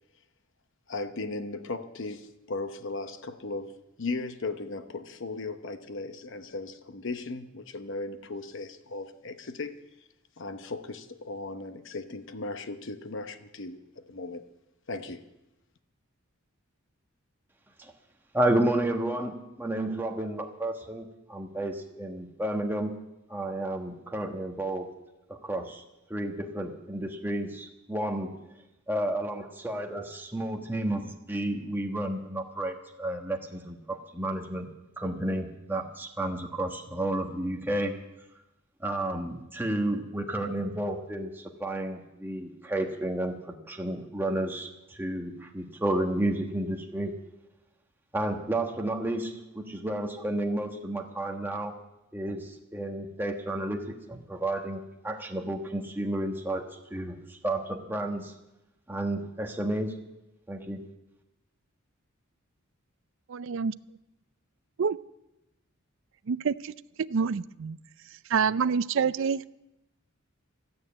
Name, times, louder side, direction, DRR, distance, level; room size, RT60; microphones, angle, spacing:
voice 1, 0.9-3.7 4.0-9.7 10.4-13.8 14.1-14.4 14.9-15.2, left 3 dB, 60° left, 9 dB, 0.9 m, -37 dB
voice 2, 18.3-22.9 23.3-24.9 25.3-25.8 26.1-28.3 28.9-34.7 35.0-38.0 38.8-47.1 48.1-51.7 52.1-56.6 56.9-58.3 58.9-59.9 60.5-60.8, right 1 dB, 10° right, 2 dB, 1.4 m, -31 dB
voice 3, 63.3-63.7 64.8-65.0 66.3-66.7 67.0-67.8 68.3-69.5, right 6 dB, 60° right, 16 dB, 0.4 m, -27 dB
13.5 x 9.5 x 8.7 m, 0.93 s
head